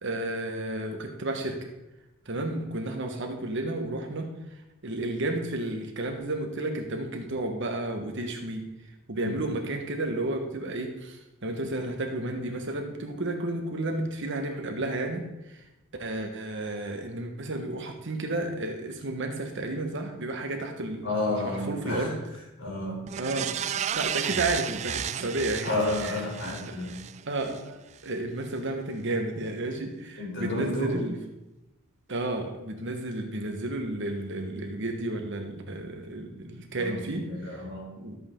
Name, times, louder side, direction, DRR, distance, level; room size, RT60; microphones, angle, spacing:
voice 1, 0.0-1.7 2.2-4.3 4.8-8.7 9.1-15.6 16.0-21.1 21.4-22.2 23.2-23.5 23.9-25.7 26.0-26.2 26.4-26.8 27.3-31.1 32.1-37.6 38.0-38.2, right 2 dB, 60° right, 4 dB, 1.5 m, -32 dB
voice 2, 21.0-22.1 22.6-23.0 25.6-27.0 30.2-31.1 36.5-37.9, left 2 dB, 60° left, -2 dB, 3.7 m, -31 dB
sound 1, 23.1-27.6 28.0-28.1, right 9 dB, 35° right, 0.3 m, -33 dB
13.5 x 7.8 x 3.8 m, 0.95 s
head